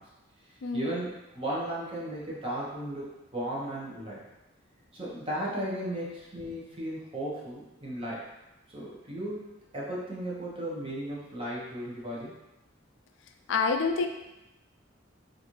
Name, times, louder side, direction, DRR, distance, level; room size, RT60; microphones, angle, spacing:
voice 1, 0.7-3.1 3.3-4.2 4.9-8.2 8.7-12.3, right 1 dB, 30° right, -6 dB, 0.8 m, -35 dB
voice 2, 13.5-14.1, left 4 dB, 70° left, 5 dB, 0.4 m, -27 dB
3.9 x 2.5 x 3.0 m, 0.97 s
head